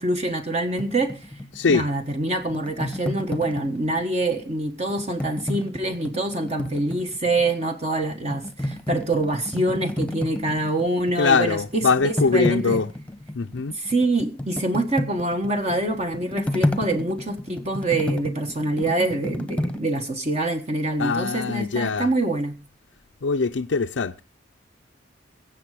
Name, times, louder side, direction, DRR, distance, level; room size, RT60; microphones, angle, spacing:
voice 1, 0.0-1.4 1.7-12.8 13.7-22.5, right 2 dB, 35° right, 1.3 m, -25 dB
sound 1, 0.8-4.2 4.9-7.6 8.0-11.3 11.5-19.8, left 1 dB, 5° left, 1.1 m, -31 dB
voice 2, 11.2-12.9 13.3-13.8 21.0-22.1 23.2-24.2, left 4 dB, 80° left, 0.6 m, -22 dB
22.5 x 7.6 x 4.9 m
head